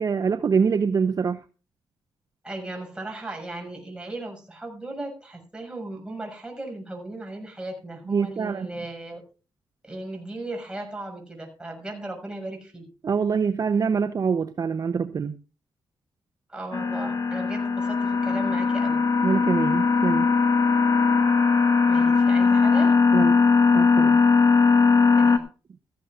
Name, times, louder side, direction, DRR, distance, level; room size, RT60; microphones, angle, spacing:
voice 1, 0.0-1.4 8.1-8.7 13.0-15.4 19.2-20.3 23.1-23.4 23.7-24.2, right 6 dB, 45° right, 0.8 m, -25 dB
voice 2, 2.4-9.2 9.8-12.9 16.5-19.0 21.9-23.0 25.2-25.4, right 2 dB, 10° right, 6.6 m, -36 dB
sound 1, 16.7-25.4, left 4 dB, 50° left, 1.7 m, -19 dB
17.5 x 14.5 x 2.5 m
wide cardioid pair, 115°, 8 cm